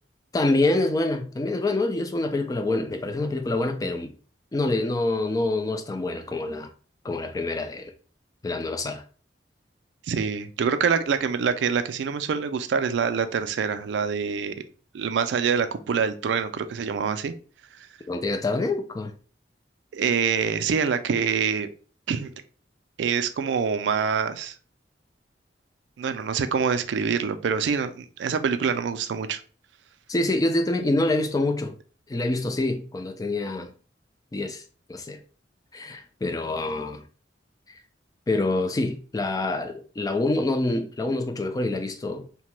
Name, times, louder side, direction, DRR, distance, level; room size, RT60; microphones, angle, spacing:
voice 1, 0.3-4.1 4.5-6.7 7.0-7.9 8.4-9.0 18.1-19.1 30.1-31.8 32.1-33.7 34.3-34.6 34.9-35.2 35.7-37.0 38.3-42.3, left 2 dB, 20° left, 0.3 m, -26 dB
voice 2, 10.0-14.5 14.9-17.3 17.8-17.9 19.9-21.7 22.1-22.3 23.0-24.5 26.0-29.4, right 6 dB, 85° right, 0.3 m, -25 dB
2.8 x 2.2 x 3.1 m
head